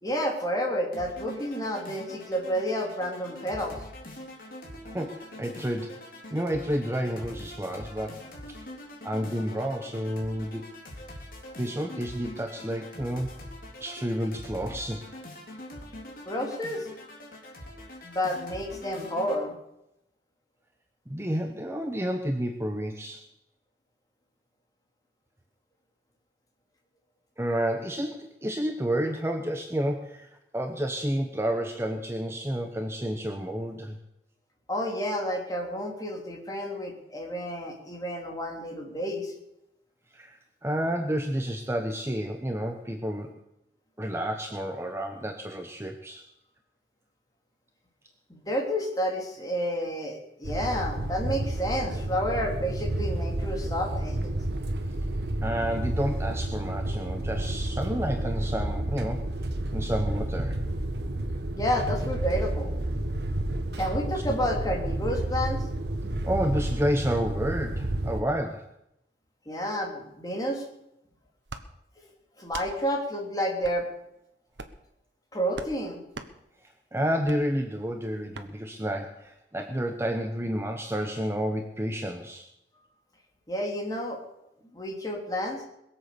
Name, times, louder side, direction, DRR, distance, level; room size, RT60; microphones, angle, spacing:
voice 1, 0.0-3.8 16.2-16.8 18.0-19.6 34.7-39.3 48.3-54.3 61.5-62.7 63.7-65.6 69.5-70.6 72.4-73.8 75.3-76.0 83.5-84.2 84.7-85.6, equal, 20° left, 0 dB, 3.3 m, -30 dB
sound 1, 0.9-19.4, left 1 dB, 50° left, 3.4 m, -44 dB
voice 2, 4.9-6.0 6.3-8.3 9.0-10.7 11.6-13.3 13.8-15.0 21.1-23.2 27.4-34.0 40.1-43.3 44.0-46.2 55.4-59.3 59.7-60.6 64.3-64.4 66.2-68.7 76.9-82.5, equal, 15° right, 4 dB, 1.0 m, -30 dB
sound 2, 50.4-68.2, right 1 dB, 65° right, 1.4 m, -30 dB
sound 3, 71.5-71.7 72.4-72.7 73.6-73.8 74.5-74.8 75.5-75.7 76.1-76.3 77.2-77.4 78.3-78.5, right 3 dB, 85° right, 1.3 m, -40 dB
21.5 x 8.0 x 6.9 m, 0.84 s
head